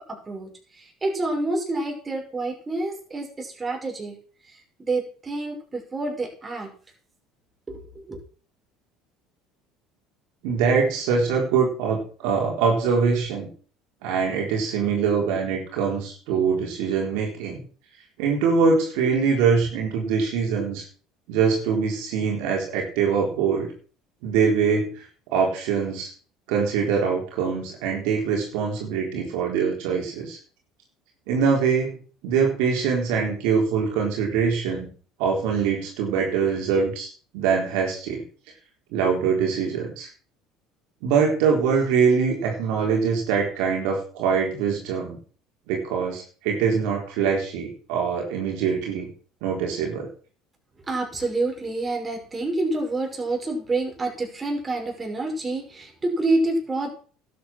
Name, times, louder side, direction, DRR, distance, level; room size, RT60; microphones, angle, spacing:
voice 1, 0.1-4.2 4.5-6.7 7.7-8.2 50.8-56.9, right 2 dB, 25° right, 2 dB, 5.7 m, -28 dB
voice 2, 10.4-13.5 14.0-17.6 18.2-20.8 21.3-23.7 24.2-26.1 26.5-30.4 31.3-34.9 35.2-38.2 38.9-40.1 41.0-45.2 45.7-49.1 49.4-50.1, right 6 dB, 75° right, 0 dB, 4.0 m, -23 dB
12.0 x 9.4 x 6.2 m, 0.40 s
supercardioid pair, 80°, 0 cm